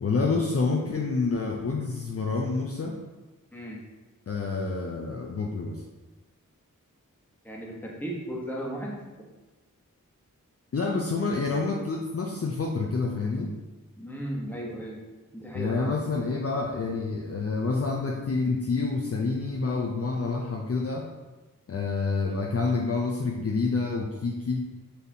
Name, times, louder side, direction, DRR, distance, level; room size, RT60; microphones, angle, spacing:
voice 1, 0.0-2.9 4.3-5.8 10.7-13.5 15.5-21.1 21.7-24.6, left 4 dB, 45° left, -1 dB, 0.5 m, -28 dB
voice 2, 7.4-9.0 14.0-15.0 15.3-15.9, right 1 dB, 5° left, -3 dB, 1.1 m, -35 dB
4.2 x 3.4 x 2.8 m, 1.2 s
cardioid pair, 40°, 33 cm